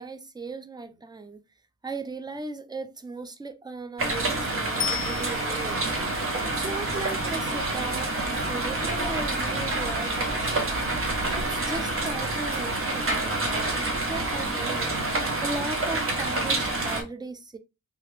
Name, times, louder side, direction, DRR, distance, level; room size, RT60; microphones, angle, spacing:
voice 1, 0.0-1.4 1.8-5.9 6.4-10.8 11.3-17.6, right 3 dB, 15° right, 0.4 m, -37 dB
sound 1, 4.0-17.0, right 2 dB, 40° right, 0.9 m, -28 dB
Bicycle bell, 4.8-5.9 15.0-15.1, left 10 dB, 40° left, 0.6 m, -33 dB
2.8 x 2.4 x 3.2 m
cardioid pair, 80°, 32 cm